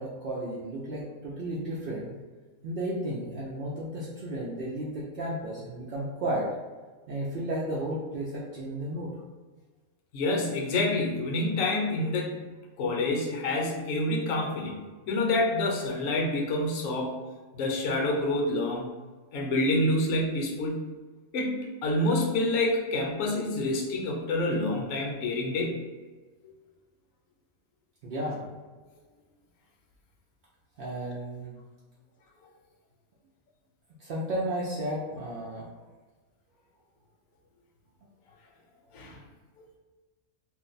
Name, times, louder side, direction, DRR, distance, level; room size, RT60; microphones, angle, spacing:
voice 1, 0.0-2.1 2.6-6.5 7.1-9.1 28.0-28.4 30.8-31.5 34.0-35.7 39.1-39.2, right 1 dB, 70° right, -6 dB, 0.5 m, -33 dB
voice 2, 10.1-12.5 12.8-14.8 15.1-17.1 17.5-18.9 19.3-20.9 21.3-21.5 21.8-25.8 38.9-39.2, left 2 dB, 70° left, 0 dB, 1.0 m, -27 dB
2.6 x 2.1 x 3.9 m, 1.3 s
omnidirectional pair, 1.5 m